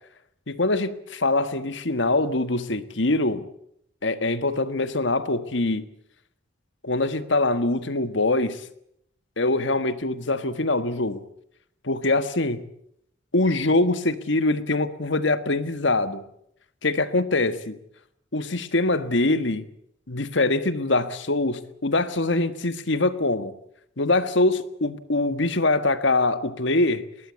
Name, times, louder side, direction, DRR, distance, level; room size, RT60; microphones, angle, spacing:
voice 1, 0.5-3.4 4.0-5.9 6.8-8.6 9.4-11.2 11.8-12.6 13.3-16.2 16.8-17.8 18.3-19.6 20.1-23.5 24.0-27.0, left 2 dB, 65° left, 12 dB, 1.6 m, -23 dB
21.0 x 19.5 x 8.2 m, 0.72 s
head